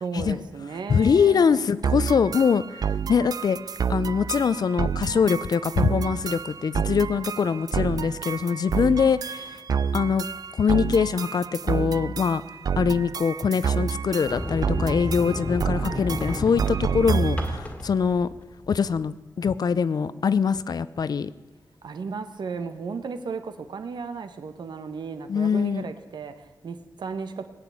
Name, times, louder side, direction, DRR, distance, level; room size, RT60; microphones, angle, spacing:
voice 1, 0.0-1.6 21.8-27.5, right 5 dB, 85° right, 9 dB, 1.3 m, -35 dB
voice 2, 0.9-3.6 3.9-9.6 9.9-10.3 10.5-12.4 12.8-18.3 18.7-21.3 25.3-25.8, left 6 dB, 65° left, 16 dB, 0.6 m, -23 dB
sound 1, 1.8-17.6, right 7 dB, 60° right, 0.4 m, -29 dB
Sliding door, 14.2-19.1, left 1 dB, 15° left, 1.8 m, -32 dB
19.0 x 8.9 x 8.6 m, 1.2 s
wide cardioid pair, 135°, 7 cm